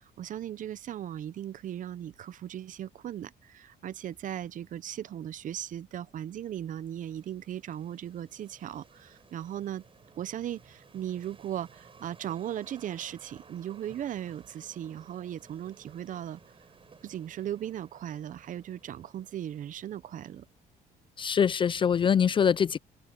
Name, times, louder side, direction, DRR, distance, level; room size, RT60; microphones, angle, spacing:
voice 1, 0.0-9.8 10.2-16.4 17.0-20.4, right 11 dB, 50° right, 0.7 m, -37 dB
sound 1, 6.1-20.6, right 5 dB, 30° right, 7.8 m, -58 dB
voice 2, 21.2-22.8, left 7 dB, 30° left, 0.4 m, -24 dB
open air
cardioid pair, 110°, 17 cm